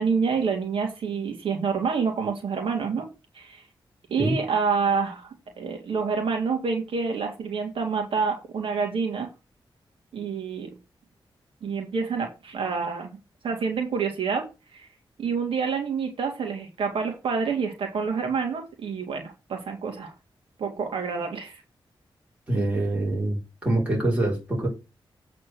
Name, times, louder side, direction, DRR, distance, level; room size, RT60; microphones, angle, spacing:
voice 1, 0.0-3.1 3.3-3.6 4.1-5.3 5.6-9.3 10.1-10.7 11.6-13.2 13.4-14.4 14.7-14.9 15.2-20.1 20.6-21.6, right 5 dB, 85° right, 2.2 m, -27 dB
voice 2, 22.5-24.7, right 1 dB, 15° right, 4.4 m, -25 dB
8.2 x 4.2 x 6.2 m
wide cardioid pair, 115°, 9 cm